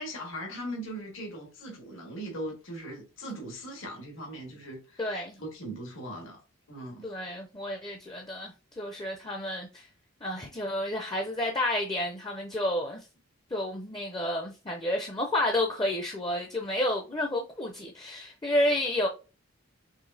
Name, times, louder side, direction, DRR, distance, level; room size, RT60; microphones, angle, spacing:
voice 1, 0.0-6.4 6.7-7.1, right 1 dB, 75° left, 1.5 m, -39 dB
voice 2, 5.0-5.4 7.0-9.9 10.2-13.1 13.5-19.1, left 1 dB, 20° left, 0.5 m, -30 dB
4.9 x 3.2 x 2.6 m
head